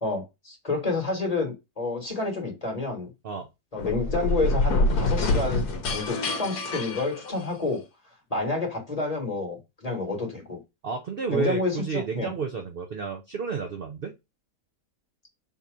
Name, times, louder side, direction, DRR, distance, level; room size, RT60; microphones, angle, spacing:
voice 1, 0.0-3.1 3.7-7.8 8.3-10.6 11.3-12.3, left 3 dB, 25° left, 1.4 m, -29 dB
sound 1, 3.8-7.8, left 2 dB, 70° left, 1.2 m, -26 dB
voice 2, 10.8-14.1, right 5 dB, 65° right, 0.5 m, -31 dB
3.7 x 2.8 x 4.8 m
omnidirectional pair, 1.8 m